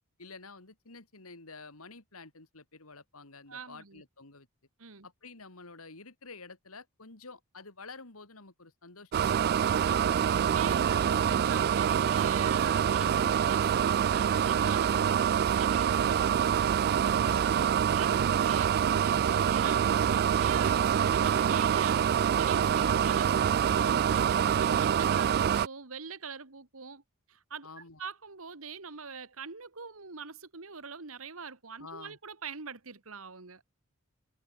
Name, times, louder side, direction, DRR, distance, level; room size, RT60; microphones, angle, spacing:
voice 1, 0.2-4.5 5.0-9.8 10.2-10.7 13.0-13.3 16.2-16.4 17.2-17.7 27.6-28.0 31.8-32.2, left 3 dB, 80° left, 3.4 m, -49 dB
voice 2, 3.5-4.0 4.8-5.1 9.9-16.2 17.4-17.5 17.9-22.0 22.4-27.0 27.3-27.7 28.0-33.6, right 5 dB, 70° right, 1.9 m, -43 dB
sound 1, 9.1-25.7, right 8 dB, 45° right, 0.3 m, -26 dB
head